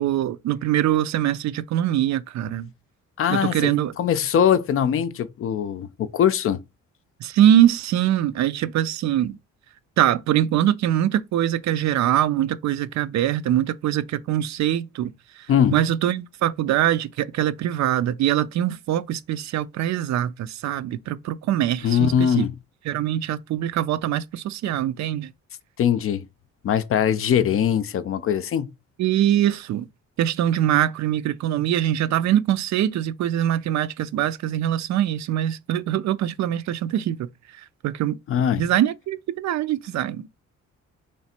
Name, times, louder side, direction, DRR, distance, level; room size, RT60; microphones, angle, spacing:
voice 1, 0.0-2.7 3.3-3.9 7.2-9.4 10.0-15.1 15.7-22.5 22.9-25.3 29.0-29.9 30.2-37.3 37.8-38.2 38.6-40.3, right 11 dB, 65° right, 0.5 m, -23 dB
voice 2, 3.2-6.6 15.5-15.8 21.8-22.5 25.8-26.2 26.6-28.7 38.3-38.7, left 9 dB, 45° left, 0.4 m, -21 dB
3.1 x 2.5 x 4.2 m
cardioid pair, 90°, 30 cm